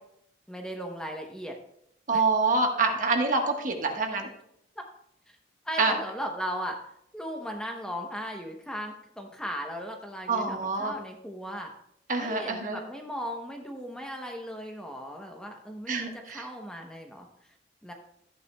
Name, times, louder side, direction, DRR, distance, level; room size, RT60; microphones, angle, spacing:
voice 1, 0.5-1.5 2.1-2.2 5.6-6.8 7.1-11.7 12.2-17.5 17.8-17.9, equal, 5° left, 2 dB, 0.8 m, -37 dB
voice 2, 2.1-4.3 5.8-5.9 10.3-10.9 12.1-12.8 15.9-16.4, right 3 dB, 45° right, 3 dB, 1.3 m, -26 dB
14.0 x 9.1 x 2.3 m, 0.73 s
head